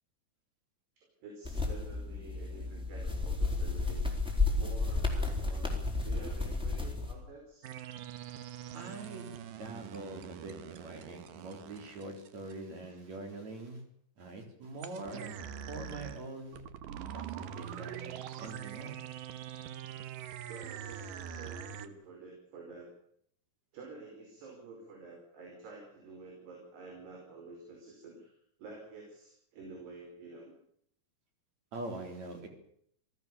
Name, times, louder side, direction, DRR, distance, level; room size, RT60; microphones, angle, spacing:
voice 1, 1.2-4.1 4.5-5.8 6.0-7.7 20.4-22.9 23.7-28.3 28.6-30.6, right 3 dB, 85° right, 0 dB, 7.2 m, -49 dB
sound 1, 1.4-7.1, left 3 dB, ahead, 3.9 m, -32 dB
sound 2, 7.6-12.5 14.8-21.9, right 9 dB, 65° right, 2.5 m, -44 dB
voice 2, 8.7-9.3 9.6-13.8 14.2-15.4 15.7-16.6 17.1-19.0 31.7-32.5, right 2 dB, 45° right, 4 dB, 4.9 m, -43 dB
27.0 x 16.5 x 7.0 m, 0.69 s
omnidirectional pair, 4.6 m